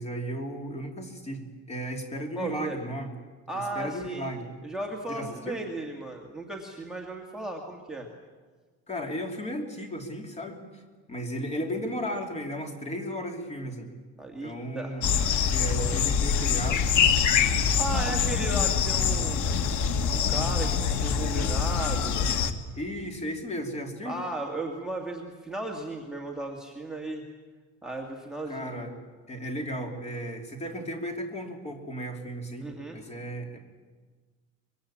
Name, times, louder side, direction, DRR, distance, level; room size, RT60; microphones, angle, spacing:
voice 1, 0.0-3.1 3.5-4.5 5.1-5.6 8.9-10.8 11.1-13.9 14.4-15.1 15.5-17.0 17.9-18.2 22.7-24.2 28.5-28.9 29.3-33.6, equal, 20° left, 3 dB, 3.0 m, -35 dB
voice 2, 2.4-2.8 3.5-4.3 4.6-8.1 14.2-15.0 17.5-19.6 20.1-22.3 24.1-27.2 27.8-28.7 32.6-33.0, right 2 dB, ahead, 1 dB, 2.0 m, -35 dB
sound 1, 15.0-22.5, left 6 dB, 85° left, 1.7 m, -25 dB
24.5 x 22.5 x 8.7 m, 1.4 s
cardioid pair, 175°, 29 cm